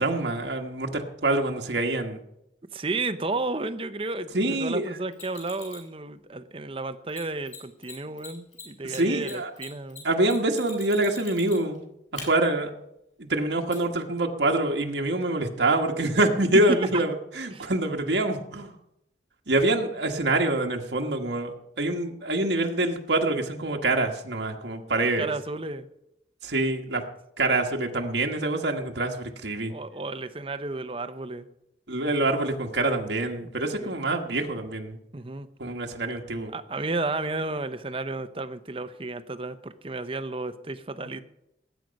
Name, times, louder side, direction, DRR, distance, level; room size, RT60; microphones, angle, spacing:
voice 1, 0.0-2.2 4.3-4.9 8.8-9.5 10.0-11.8 12.1-12.7 13.2-18.7 19.5-25.3 26.4-27.0 27.4-29.7 31.9-35.0 35.6-36.5, right 2 dB, 80° right, 2 dB, 1.4 m, -25 dB
voice 2, 2.7-10.1 16.5-16.8 17.5-17.7 25.0-25.9 29.7-31.5 33.7-34.0 35.1-35.5 36.5-41.2, right 2 dB, 30° right, 11 dB, 0.7 m, -32 dB
Mechanisms, 5.1-5.9 7.1-7.2 7.5-7.6 7.8-7.9 8.2-11.8 12.2-12.3 13.7-13.8, left 5 dB, 40° left, 6.3 m, -42 dB
19.0 x 9.2 x 5.2 m, 0.84 s
head